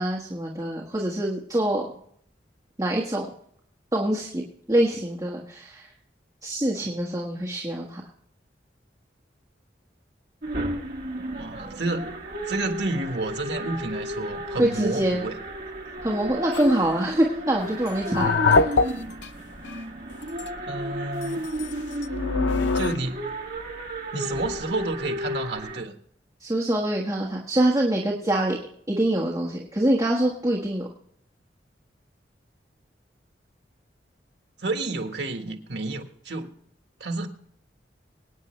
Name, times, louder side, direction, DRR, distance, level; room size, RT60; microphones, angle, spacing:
voice 1, 0.0-1.8 2.8-3.3 3.9-4.4 4.7-5.9 6.4-8.0 14.6-15.2 16.0-18.6 26.4-28.6 28.9-30.9, right 1 dB, 20° right, -2 dB, 1.6 m, -25 dB
sound 1, 10.4-25.8, equal, 50° right, 1.4 m, -33 dB
voice 2, 11.2-12.1 12.5-15.4 20.6-21.5 22.7-23.3 24.1-25.9 34.6-36.5 37.0-37.3, right 2 dB, 70° right, 5 dB, 1.6 m, -30 dB
sound 2, 16.5-16.8 17.9-19.3 19.6-19.8 20.2-20.5 21.2-23.0, left 4 dB, 85° left, 0.6 m, -23 dB
23.5 x 9.5 x 3.3 m, 0.66 s
head